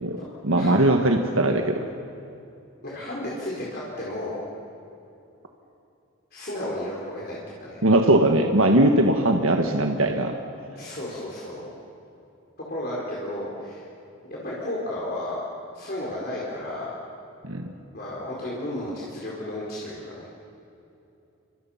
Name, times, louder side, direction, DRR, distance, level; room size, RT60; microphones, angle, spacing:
voice 1, 0.0-1.8 7.8-10.3 17.4-17.7, right 1 dB, 80° right, 4 dB, 1.5 m, -20 dB
voice 2, 2.8-4.4 6.3-7.8 8.9-9.1 10.7-11.7 12.7-13.9 14.2-15.4 15.7-16.9 17.9-20.3, left 1 dB, 45° left, -5 dB, 4.6 m, -33 dB
30.0 x 25.5 x 5.8 m, 2.8 s
head